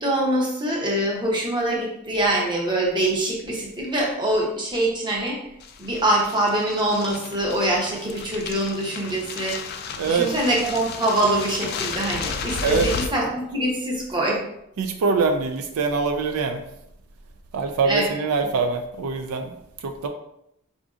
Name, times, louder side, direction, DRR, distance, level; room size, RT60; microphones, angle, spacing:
voice 1, 0.0-5.4 5.8-9.6 10.1-14.4 17.8-18.0, right 1 dB, 20° right, -2 dB, 0.7 m, -24 dB
sound 1, 5.6-13.1, left 5 dB, 45° left, 0.3 m, -33 dB
voice 2, 10.0-10.3 12.6-12.9 14.8-16.6 17.5-19.5 19.8-20.1, right 4 dB, 80° right, 6 dB, 0.3 m, -23 dB
4.8 x 2.5 x 2.4 m, 0.79 s
head